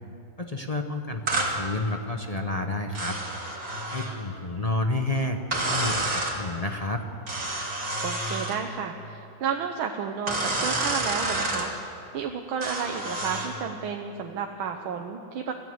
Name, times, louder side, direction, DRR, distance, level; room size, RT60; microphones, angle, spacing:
voice 1, 0.4-3.2 3.9-7.0, left 2 dB, 30° left, 3 dB, 0.7 m, -30 dB
sound 1, 1.3-1.5 2.9-4.2 5.5-6.4 7.3-8.6 10.3-11.7 12.6-13.5, right 2 dB, 45° right, 3.2 m, -29 dB
voice 2, 8.0-15.5, right 6 dB, 80° right, 4 dB, 1.8 m, -32 dB
25.5 x 15.5 x 7.9 m, 2.8 s
omnidirectional pair, 2.2 m